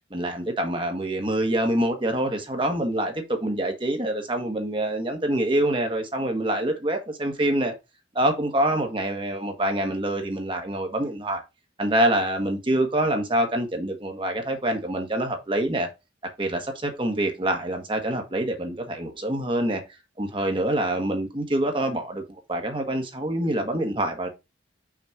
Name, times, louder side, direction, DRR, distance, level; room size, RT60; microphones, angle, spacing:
voice 1, 0.1-7.7 8.1-11.4 11.8-15.9 16.4-19.8 20.2-24.3, right 1 dB, 25° right, 1.4 m, -26 dB
6.1 x 4.3 x 4.6 m
head